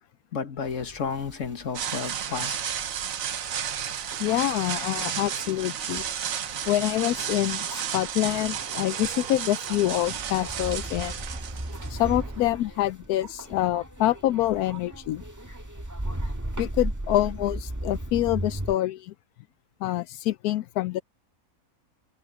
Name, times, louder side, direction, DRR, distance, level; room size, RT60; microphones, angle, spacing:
voice 1, 0.3-2.7, left 6 dB, 60° left, 1.9 m, -32 dB
sound 1, 0.6-18.8, right 1 dB, 10° right, 1.6 m, -38 dB
sound 2, 1.7-12.4, right 8 dB, 65° right, 1.3 m, -33 dB
voice 2, 4.2-6.0 6.7-11.2 11.9-15.2 16.6-19.1 19.8-21.0, left 14 dB, 90° left, 1.1 m, -26 dB
omnidirectional pair, 1.5 m